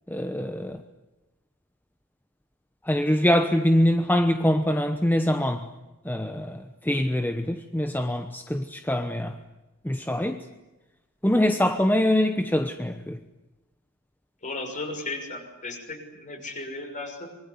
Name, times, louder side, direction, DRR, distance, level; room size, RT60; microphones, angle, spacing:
voice 1, 0.1-0.8 2.9-5.7 6.0-9.4 9.8-10.4 11.2-13.2, left 1 dB, 10° left, 1.0 m, -24 dB
voice 2, 14.4-17.3, left 2 dB, 35° left, 6.1 m, -35 dB
25.0 x 23.0 x 9.6 m
head